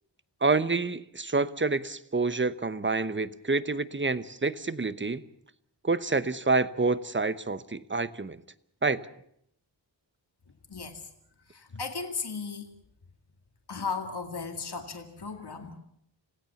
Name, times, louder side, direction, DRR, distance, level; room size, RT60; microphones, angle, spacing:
voice 1, 0.4-5.2 5.8-8.4 8.8-9.1, right 3 dB, 25° right, 15 dB, 0.9 m, -28 dB
voice 2, 10.7-11.1 11.5-12.7 13.7-15.8, left 4 dB, 60° left, 5 dB, 2.1 m, -36 dB
28.0 x 17.0 x 7.1 m, 0.72 s
wide cardioid pair, 70°, 45 cm